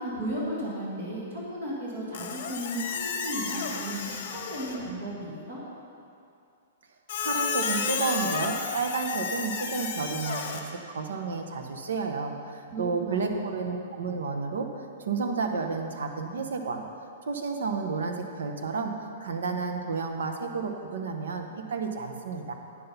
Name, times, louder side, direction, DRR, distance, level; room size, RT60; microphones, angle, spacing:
voice 1, 0.0-5.6 12.7-13.4, right 1 dB, 45° right, -6 dB, 1.9 m, -34 dB
Squeak, 2.1-4.9 7.1-10.6, left 6 dB, 45° left, 0.9 m, -32 dB
voice 2, 7.2-10.6 10.9-14.7 15.1-16.8 17.3-18.9 19.2-22.5, right 4 dB, 85° right, 5 dB, 1.0 m, -31 dB
9.4 x 5.9 x 5.6 m, 2.5 s
hypercardioid pair, 180°, 0 cm